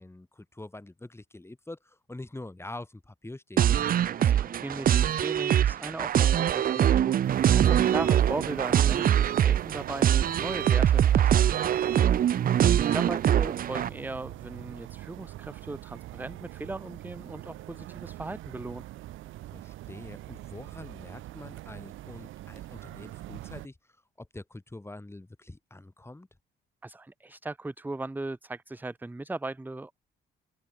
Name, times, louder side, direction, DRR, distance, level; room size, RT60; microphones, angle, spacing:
voice 1, 0.0-3.6 7.6-8.1 10.2-10.6 19.5-23.8 24.2-26.3, left 2 dB, 10° left, 6.7 m, -45 dB
sound 1, 3.6-13.9, right 10 dB, 45° right, 0.5 m, -23 dB
voice 2, 4.2-10.1 10.4-12.0 12.5-18.9 26.8-30.0, right 2 dB, 10° right, 0.8 m, -38 dB
sound 2, 7.2-23.7, right 16 dB, 90° right, 1.5 m, -43 dB
open air
cardioid pair, 90°, 20 cm